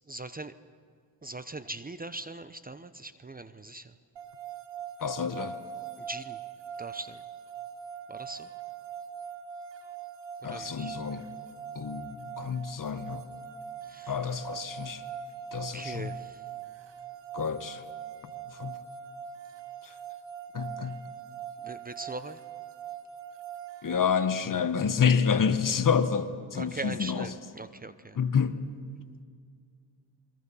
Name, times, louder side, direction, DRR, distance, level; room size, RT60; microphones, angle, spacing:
voice 1, 0.1-0.5 1.2-3.9 6.0-6.4 6.8-7.2 8.1-8.5 10.5-11.0 13.8-14.2 15.7-16.4 20.8-20.9 21.6-22.4 26.5-28.2, right 2 dB, 20° right, 12 dB, 0.8 m, -40 dB
sound 1, 4.2-24.0, right 8 dB, 70° right, 1.8 m, -42 dB
voice 2, 5.0-5.5 10.4-11.2 11.7-13.2 14.1-15.0 15.5-16.1 17.3-17.8 18.6-18.8 20.5-21.0 23.8-27.3 28.2-28.6, left 6 dB, 45° left, 10 dB, 1.3 m, -28 dB
28.5 x 22.5 x 5.6 m, 2.1 s
cardioid pair, 85°, 45 cm